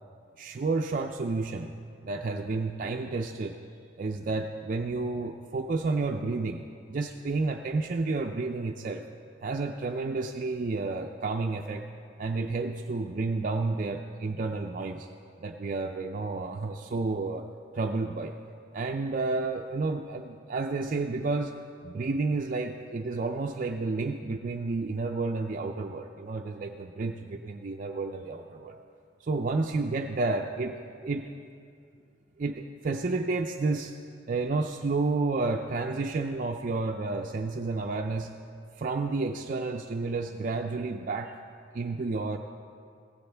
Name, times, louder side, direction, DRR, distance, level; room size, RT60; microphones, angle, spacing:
voice 1, 0.4-1.7 2.0-3.6 4.0-6.6 6.9-9.1 9.4-11.9 12.2-15.1 15.4-17.5 17.7-18.3 18.7-28.8 29.2-30.8 31.0-31.3 32.4-34.0 34.3-38.3 38.8-41.3 41.7-42.4, right 3 dB, 45° right, 3 dB, 0.4 m, -31 dB
16.0 x 15.0 x 3.4 m, 2.4 s
head